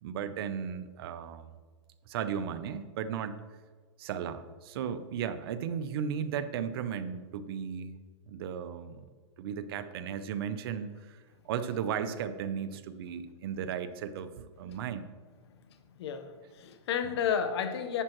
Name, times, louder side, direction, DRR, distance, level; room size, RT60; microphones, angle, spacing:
voice 1, 0.0-1.5 2.1-3.4 4.0-7.9 8.3-9.1 9.4-15.1, right 8 dB, 50° right, 12 dB, 0.7 m, -35 dB
voice 2, 15.7-18.0, left 7 dB, 60° left, 10 dB, 1.0 m, -32 dB
11.0 x 8.6 x 3.0 m, 1.5 s
hypercardioid pair, 145°, 16 cm